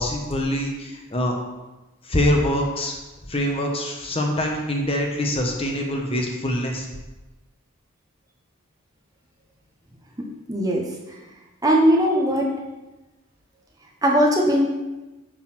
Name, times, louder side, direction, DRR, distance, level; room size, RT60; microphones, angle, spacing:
voice 1, 0.0-1.4 2.0-2.9 3.3-6.9, left 1 dB, 25° left, 1 dB, 1.0 m, -24 dB
voice 2, 10.2-10.9 11.6-12.5 14.0-14.7, equal, 15° right, -1 dB, 1.0 m, -19 dB
9.1 x 4.0 x 5.9 m, 1.1 s
head